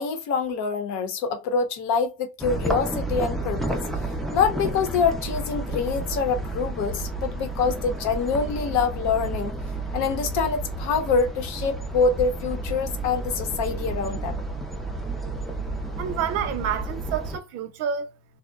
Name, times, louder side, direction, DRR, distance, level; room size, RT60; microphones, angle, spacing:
voice 1, 0.0-3.8 4.3-9.5 9.9-14.4, left 5 dB, 75° left, 0.8 m, -25 dB
sound 1, 2.4-17.4, right 2 dB, ahead, 0.3 m, -31 dB
voice 2, 16.0-18.1, right 8 dB, 60° right, 0.5 m, -28 dB
2.7 x 2.1 x 2.2 m
cardioid pair, 130°, 29 cm